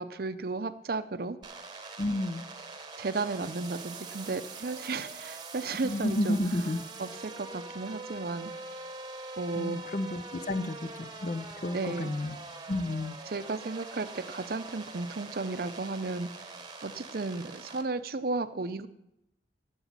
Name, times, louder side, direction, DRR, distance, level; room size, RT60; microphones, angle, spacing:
voice 1, 0.0-1.4 3.0-6.4 7.0-8.5 9.4-9.8 11.7-12.1 13.3-16.3 16.8-18.9, right 3 dB, 55° right, 12 dB, 0.6 m, -34 dB
sound 1, 1.4-17.8, right 3 dB, 25° right, 1.0 m, -43 dB
voice 2, 2.0-2.5 5.8-6.8 9.5-12.4 12.7-13.1, left 1 dB, 40° left, 13 dB, 0.5 m, -31 dB
12.0 x 7.1 x 7.3 m, 0.84 s
head